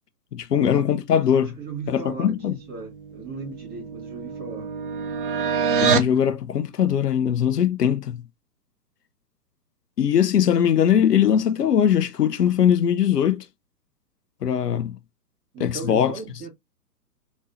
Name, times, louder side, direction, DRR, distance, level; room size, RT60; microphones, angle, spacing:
voice 1, 0.3-1.5 1.9-2.6 5.8-8.2 10.0-13.4 14.4-15.0 15.6-16.1, left 9 dB, 75° left, 0.7 m, -21 dB
voice 2, 1.4-4.7 15.5-16.5, right 4 dB, 20° right, 2.3 m, -37 dB
sound 1, 3.0-6.2, right 5 dB, 35° right, 0.5 m, -25 dB
4.0 x 3.6 x 2.6 m
figure-of-eight pair, 130°, 49 cm